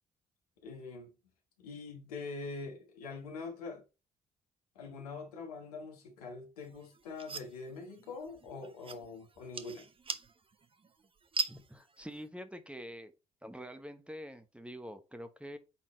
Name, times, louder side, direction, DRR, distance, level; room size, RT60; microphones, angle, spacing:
voice 1, 0.6-1.1 1.6-3.8 4.7-9.9, left 4 dB, 80° left, 1.4 m, -44 dB
sound 1, 6.6-12.3, right 4 dB, 30° right, 0.8 m, -42 dB
voice 2, 11.5-13.1 13.4-15.6, equal, 5° right, 1.1 m, -46 dB
8.5 x 4.0 x 3.1 m
figure-of-eight pair, 40°, 19 cm